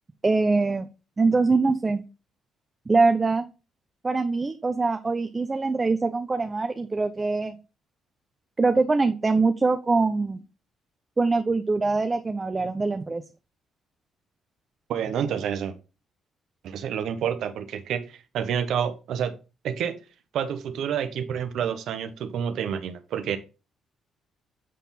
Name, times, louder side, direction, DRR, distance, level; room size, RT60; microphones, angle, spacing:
voice 1, 0.2-0.9 1.2-2.0 2.9-3.4 4.0-7.6 8.6-10.4 11.2-13.2, right 3 dB, 25° right, 0.5 m, -23 dB
voice 2, 14.9-15.7 16.6-19.4 19.6-20.0 20.3-23.4, right 8 dB, 75° right, 0.7 m, -28 dB
7.5 x 3.6 x 4.2 m
cardioid pair, 90°, 0 cm